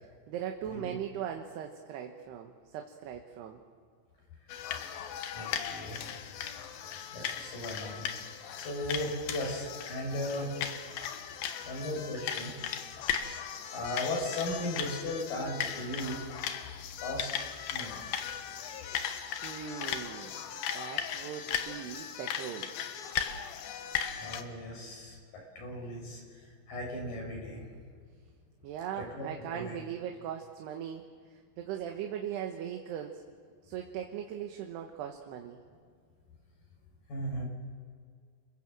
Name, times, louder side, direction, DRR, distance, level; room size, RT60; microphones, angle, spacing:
voice 1, 0.3-3.6 19.4-20.4 20.7-22.7 28.6-31.0 31.3-33.2 33.6-35.6, right 9 dB, 70° right, 3 dB, 3.1 m, -39 dB
sound 1, 4.5-24.4, left 9 dB, 65° left, 2.5 m, -37 dB
voice 2, 5.3-6.0 7.1-8.1 8.6-10.5 11.6-12.5 13.7-16.4 17.0-17.4 17.7-18.0 23.8-25.2 25.6-26.2 26.7-27.7 29.0-29.3 29.5-29.8 37.1-37.4, left 1 dB, 50° left, 0 dB, 7.2 m, -36 dB
29.5 x 22.0 x 7.6 m, 2.1 s
omnidirectional pair, 5.3 m